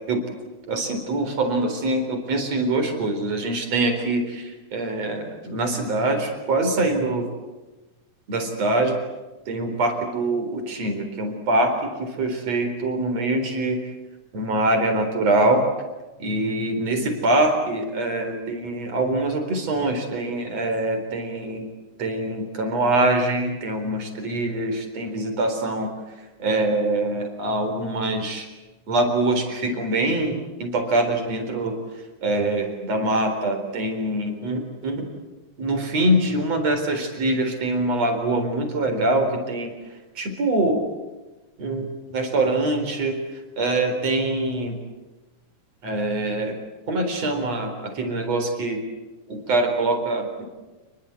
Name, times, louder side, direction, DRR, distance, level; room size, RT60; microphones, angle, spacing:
voice 1, 0.7-7.3 8.3-9.0 9.5-13.8 14.3-15.6 16.2-21.7 22.0-25.9 26.4-28.5 28.9-31.8 32.2-35.1 35.6-39.7 40.2-40.8 41.6-44.8 45.8-46.6 46.9-48.8 49.3-50.5, right 2 dB, 55° right, 5 dB, 5.2 m, -24 dB
29.0 x 21.5 x 8.5 m, 1.2 s
omnidirectional pair, 3.4 m